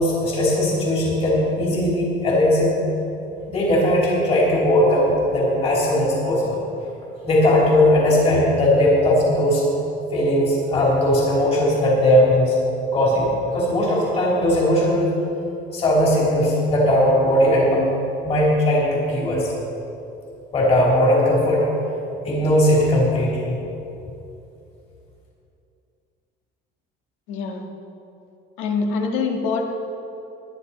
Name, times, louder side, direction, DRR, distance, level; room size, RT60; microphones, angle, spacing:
voice 1, 0.0-2.7 3.5-6.6 7.2-9.6 10.1-12.5 12.9-15.1 15.7-17.8 18.2-19.5 20.5-21.7 22.3-23.6, left 1 dB, 30° left, -4 dB, 3.3 m, -18 dB
voice 2, 27.3-27.6 28.6-29.6, left 4 dB, 80° left, 3 dB, 1.7 m, -24 dB
19.5 x 10.0 x 4.2 m, 2.8 s
cardioid pair, 170°, 20 cm